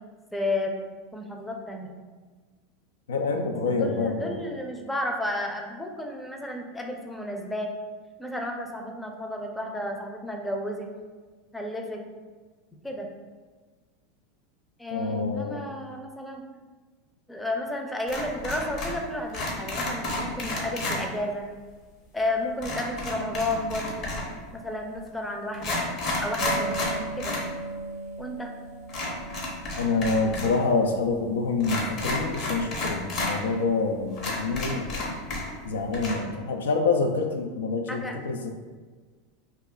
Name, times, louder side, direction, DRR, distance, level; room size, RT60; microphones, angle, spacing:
voice 1, 0.3-0.8 1.1-2.0 3.3-7.7 8.2-10.9 11.5-12.0 12.8-13.1 14.8-16.4 17.3-21.5 22.1-24.1 24.5-25.8 26.2-27.4 28.2-28.5 37.9-38.2, left 1 dB, 10° left, 2 dB, 0.5 m, -32 dB
voice 2, 3.1-4.4 14.9-15.6 29.8-35.2 35.7-38.5, left 4 dB, 85° left, 4 dB, 0.3 m, -27 dB
sound 1, 18.1-19.0 19.3-21.0 22.6-24.4 25.1-25.2 25.5-27.5 27.8-27.9 28.9-30.6 30.8-30.9 31.6-33.3 33.8-33.9 34.2-35.7 35.9-36.1, left 2 dB, 50° left, 1.0 m, -31 dB
sound 2, 26.4-32.6, right 2 dB, 85° right, 0.3 m, -38 dB
2.6 x 2.4 x 3.8 m, 1.4 s
hypercardioid pair, 95°, 0 cm